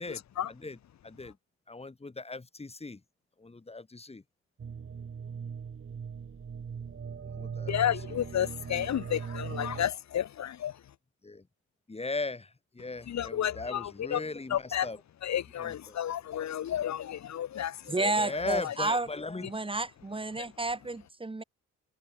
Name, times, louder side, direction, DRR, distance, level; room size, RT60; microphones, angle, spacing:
voice 1, 0.0-1.4 1.7-3.0 3.4-4.2 7.2-8.2 11.2-11.5 11.9-15.0 15.6-16.0 18.1-19.5, left 3 dB, 20° left, 5.1 m, -38 dB
sound 1, 4.6-9.9, right 6 dB, 45° right, 6.9 m, -39 dB
voice 2, 7.7-10.7 13.1-14.2 14.5-14.9 15.2-18.1 20.4-20.5, left 10 dB, 65° left, 2.8 m, -31 dB
voice 3, 17.9-19.1 19.4-21.4, right 2 dB, 15° right, 2.6 m, -31 dB
cardioid pair, 90°, 30 cm